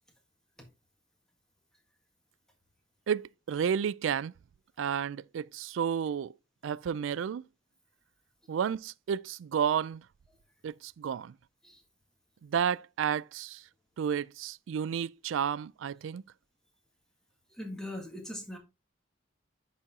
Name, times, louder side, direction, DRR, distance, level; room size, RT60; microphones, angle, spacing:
voice 1, 3.1-4.3 4.8-6.3 6.6-7.4 8.5-10.0 10.6-11.3 12.4-13.6 14.0-16.2, right 8 dB, 85° right, 0.3 m, -31 dB
voice 2, 17.5-18.6, left 1 dB, 5° left, 1.7 m, -40 dB
9.9 x 4.4 x 3.6 m
head